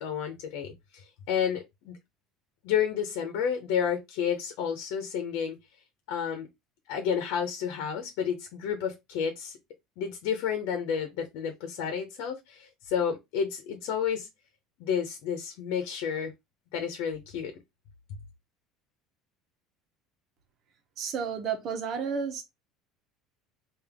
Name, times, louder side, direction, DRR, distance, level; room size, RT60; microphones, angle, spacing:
voice 1, 0.0-2.0 2.6-5.6 6.1-6.5 6.9-9.6 10.0-14.3 14.8-16.3 16.7-17.5, left 7 dB, 75° left, 0.9 m, -31 dB
voice 2, 21.0-22.4, right 6 dB, 50° right, 1.1 m, -31 dB
3.5 x 2.7 x 3.6 m
supercardioid pair, 115°, 0 cm